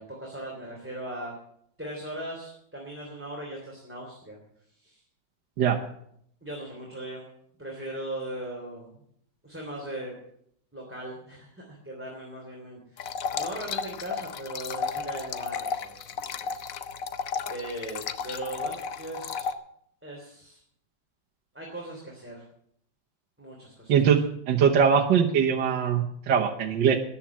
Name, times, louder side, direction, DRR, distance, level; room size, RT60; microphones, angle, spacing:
voice 1, 0.0-1.3 1.8-4.4 4.8-5.0 6.4-7.2 7.6-9.0 9.4-10.2 10.7-16.1 16.4-16.6 16.9-17.0 17.5-19.5 20.0-20.6 21.5-22.4 23.4-24.0, right 1 dB, 5° right, -2 dB, 3.0 m, -39 dB
sound 1, 13.0-19.5, left 6 dB, 60° left, 1.0 m, -33 dB
voice 2, 23.9-24.2 24.5-27.0, right 7 dB, 70° right, 0 dB, 1.7 m, -21 dB
13.5 x 10.5 x 7.3 m, 0.70 s
omnidirectional pair, 2.1 m